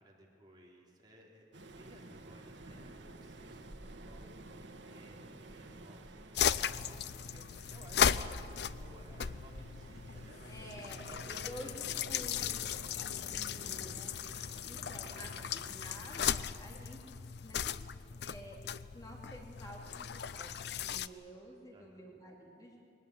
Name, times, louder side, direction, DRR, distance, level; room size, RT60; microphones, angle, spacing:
voice 1, 0.0-12.1 13.2-13.3 14.3-14.5 15.0-15.4 17.1-17.4 21.7-22.1, right 1 dB, 25° right, -3 dB, 3.7 m, -59 dB
Waves surf, 1.5-16.3, right 2 dB, 80° right, 1.5 m, -52 dB
sound 1, 6.3-21.1, left 8 dB, 65° left, 0.5 m, -37 dB
voice 2, 10.5-12.6 13.0-14.4 14.6-17.2 17.4-17.8 18.2-18.6 18.9-22.8, equal, 20° left, -1 dB, 2.5 m, -50 dB
22.0 x 19.0 x 8.9 m, 2.5 s
head